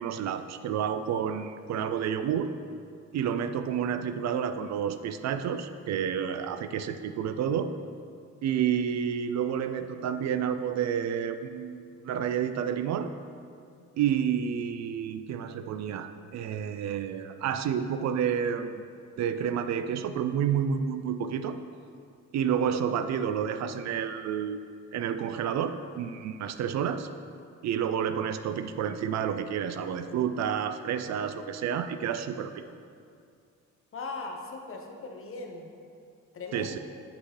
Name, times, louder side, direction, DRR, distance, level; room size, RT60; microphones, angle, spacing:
voice 1, 0.0-2.5 3.1-7.7 8.4-13.1 14.0-18.8 19.2-21.6 22.3-24.6 24.9-27.1 27.6-32.5 36.5-36.8, right 8 dB, 65° right, 10 dB, 0.4 m, -30 dB
voice 2, 33.9-35.7 36.3-36.8, left 3 dB, 45° left, 3 dB, 0.9 m, -39 dB
7.7 x 5.9 x 3.3 m, 2.3 s
cardioid pair, 90°, 30 cm